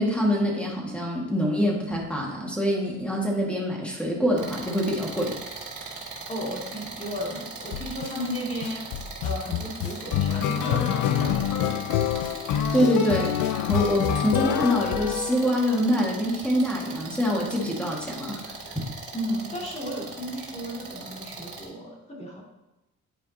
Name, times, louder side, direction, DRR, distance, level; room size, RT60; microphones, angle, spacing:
voice 1, 0.0-5.3 12.7-13.3 13.7-18.6, equal, 5° left, -2 dB, 1.9 m, -25 dB
sound 1, 4.4-21.6, right 4 dB, 80° right, 1.9 m, -39 dB
voice 2, 6.3-8.9 9.2-12.0 19.1-22.4, equal, 20° left, -3 dB, 2.5 m, -34 dB
sound 2, 7.7-8.1 8.6-15.8, left 10 dB, 90° left, 0.5 m, -26 dB
9.7 x 5.0 x 2.9 m, 0.98 s
cardioid pair, 90°, 30 cm